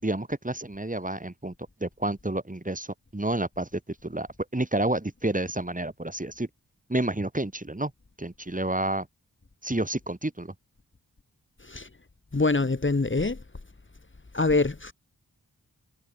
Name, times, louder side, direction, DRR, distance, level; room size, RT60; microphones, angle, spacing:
voice 1, 0.0-1.5 1.8-6.5 6.9-7.9 8.2-9.1 9.6-10.5, right 1 dB, 20° right, 6.6 m, -30 dB
voice 2, 12.3-13.4 14.3-14.9, left 3 dB, 30° left, 2.3 m, -24 dB
cardioid pair, 55°, 37 cm